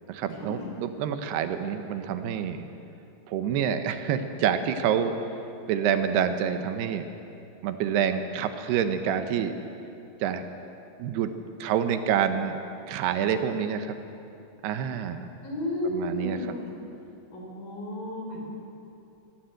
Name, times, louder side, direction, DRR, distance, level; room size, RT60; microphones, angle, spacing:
voice 1, 0.1-2.7 3.3-5.2 5.7-7.1 7.6-9.5 10.2-10.5 11.0-11.3 11.6-12.6 12.9-14.0 14.6-15.3 15.8-16.5, right 8 dB, 80° right, 8 dB, 2.9 m, -27 dB
voice 2, 15.4-16.7 17.3-18.5, left 1 dB, 55° left, 0 dB, 5.4 m, -33 dB
23.0 x 16.5 x 7.8 m, 2.8 s
omnidirectional pair, 4.8 m